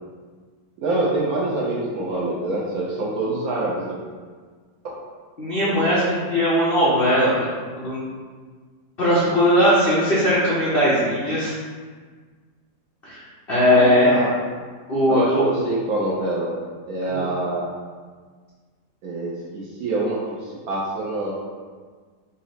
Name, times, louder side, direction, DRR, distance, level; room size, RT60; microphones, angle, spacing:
voice 1, 0.8-4.0 4.8-4.9 5.6-5.9 13.7-14.3 15.1-16.5 16.9-17.7 19.0-21.3, right 2 dB, 70° right, -5 dB, 0.9 m, -26 dB
voice 2, 5.4-7.5 7.7-8.0 9.0-11.5 13.0-14.2 14.9-15.4 17.1-17.2, equal, 80° left, -9 dB, 0.5 m, -19 dB
4.0 x 2.0 x 3.9 m, 1.5 s
omnidirectional pair, 2.0 m